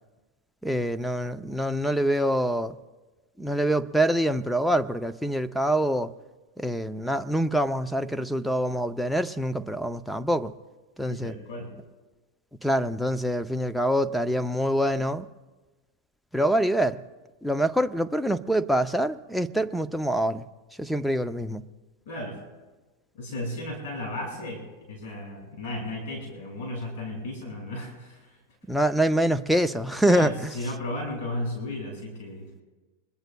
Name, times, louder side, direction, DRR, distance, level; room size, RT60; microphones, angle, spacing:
voice 1, 0.6-2.8 3.4-6.1 6.6-10.5 11.0-11.4 12.6-15.3 16.3-17.0 17.4-20.4 20.8-21.6 28.7-30.5, right 1 dB, ahead, 11 dB, 0.5 m, -25 dB
voice 2, 11.1-11.7 22.1-22.4 23.1-28.2 30.1-32.6, left 1 dB, 65° left, 0 dB, 5.8 m, -34 dB
25.5 x 21.0 x 2.3 m, 1.2 s
supercardioid pair, 125°, 0 cm